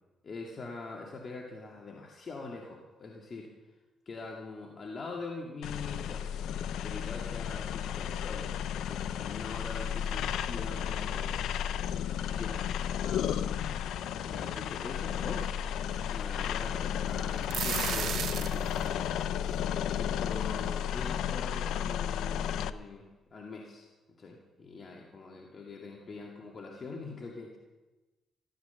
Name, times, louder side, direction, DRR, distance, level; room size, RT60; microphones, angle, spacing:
voice 1, 0.2-3.5 4.1-6.3 6.8-11.4 11.7-12.7 13.0-13.4 14.2-15.6 16.1-19.5 19.9-27.6, left 3 dB, 40° left, 0 dB, 2.2 m, -43 dB
sound 1, 5.6-22.7, left 9 dB, 80° left, 0.6 m, -33 dB
sound 2, 6.7-18.4, right 4 dB, ahead, 7.4 m, -58 dB
sound 3, 17.2-18.9, right 9 dB, 65° right, 0.6 m, -34 dB
14.0 x 13.5 x 7.0 m, 1.1 s
cardioid pair, 90°, 0 cm